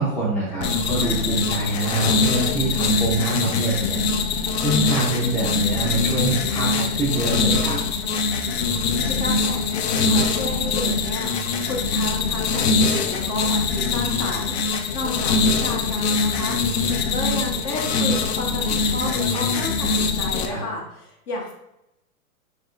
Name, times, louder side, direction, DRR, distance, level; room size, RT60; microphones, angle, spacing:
voice 1, 0.0-4.1 4.6-7.8 20.5-20.6, right 2 dB, 5° left, -8 dB, 0.6 m, -25 dB
sound 1, 0.6-20.5, left 4 dB, 45° left, 0.5 m, -23 dB
voice 2, 9.0-21.5, left 2 dB, 30° left, -1 dB, 1.0 m, -32 dB
4.8 x 3.2 x 2.5 m, 0.85 s
hypercardioid pair, 130°, 44 cm